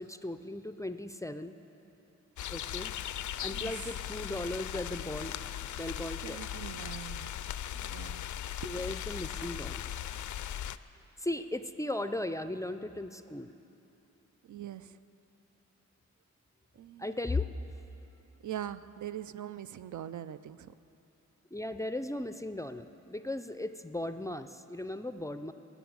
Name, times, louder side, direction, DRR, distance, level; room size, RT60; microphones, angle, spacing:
voice 1, 0.0-1.5 2.5-2.9 3.4-6.4 8.6-9.9 11.2-13.5 17.0-17.5 21.5-25.5, left 1 dB, 10° left, 10 dB, 0.4 m, -37 dB
sound 1, 2.4-10.8, left 10 dB, 75° left, 0.4 m, -38 dB
voice 2, 6.2-7.3 7.7-8.3 8.6-8.7 14.4-15.0 16.8-17.1 18.4-20.7, right 11 dB, 75° right, 13 dB, 0.5 m, -42 dB
21.0 x 7.1 x 9.5 m, 2.9 s
wide cardioid pair, 150°, 30 cm